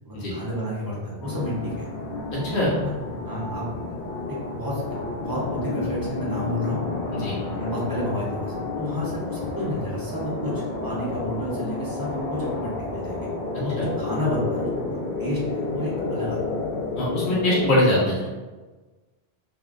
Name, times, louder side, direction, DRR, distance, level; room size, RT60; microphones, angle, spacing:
voice 1, 0.0-1.9 2.8-2.9 3.2-3.9 4.3-4.8 5.2-6.8 7.5-13.3 13.6-14.7 15.2-16.4, left 1 dB, 25° right, -7 dB, 0.6 m, -31 dB
sound 1, 1.2-17.8, left 3 dB, 55° left, 0.6 m, -30 dB
voice 2, 17.0-18.3, left 1 dB, 90° left, -6 dB, 1.2 m, -22 dB
3.5 x 2.1 x 2.4 m, 1.3 s
omnidirectional pair, 1.1 m